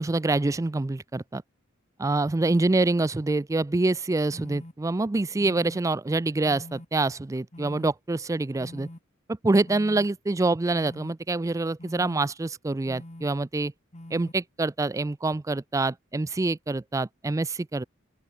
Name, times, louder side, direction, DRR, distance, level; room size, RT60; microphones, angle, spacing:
voice 1, 0.0-1.4 2.0-8.9 9.4-13.7 14.1-17.8, right 2 dB, 15° right, 0.3 m, -26 dB
sound 1, 4.3-4.7 5.4-5.8 6.4-6.9 7.5-7.9 8.6-9.0 9.7-10.1 10.7-11.1 11.8-12.2 12.9-13.3 13.9-14.3, left 1 dB, 35° left, 2.0 m, -43 dB
open air
head